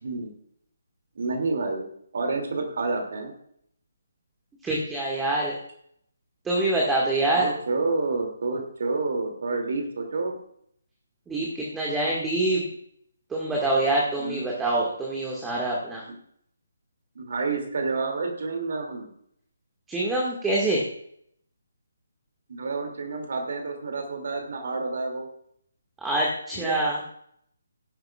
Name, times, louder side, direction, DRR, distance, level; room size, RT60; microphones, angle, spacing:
voice 1, 0.0-0.3 1.2-1.9 2.1-3.3 7.3-10.4 14.2-14.5 17.1-19.1 22.5-25.3 26.5-26.8, right 3 dB, 50° right, 3 dB, 2.6 m, -29 dB
voice 2, 4.6-5.5 6.4-7.5 11.3-12.6 13.3-16.0 19.9-20.8 26.0-27.0, right 2 dB, 5° right, -4 dB, 1.9 m, -25 dB
17.0 x 11.5 x 2.4 m, 0.68 s
figure-of-eight pair, 145°, 0 cm